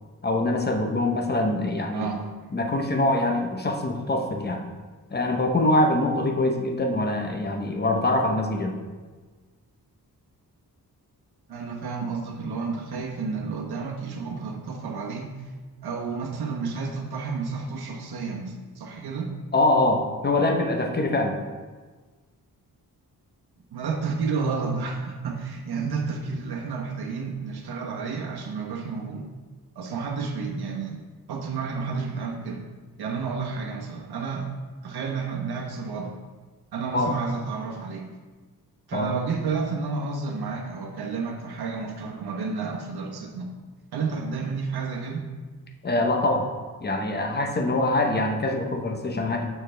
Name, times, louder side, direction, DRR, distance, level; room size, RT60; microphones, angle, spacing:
voice 1, 0.2-2.1 2.5-4.6 5.1-8.8 19.5-21.4 36.9-37.1 38.9-39.1 45.8-46.5 46.8-49.5, left 2 dB, 25° left, 4 dB, 0.8 m, -24 dB
voice 2, 11.5-15.3 15.8-19.3 23.7-29.3 29.8-31.0 31.3-32.6 33.0-34.5 34.8-36.1 36.7-38.0 38.9-43.5 43.9-45.3, right 4 dB, 90° right, 1 dB, 1.1 m, -31 dB
6.8 x 6.2 x 3.4 m, 1.4 s
wide cardioid pair, 105°, 37 cm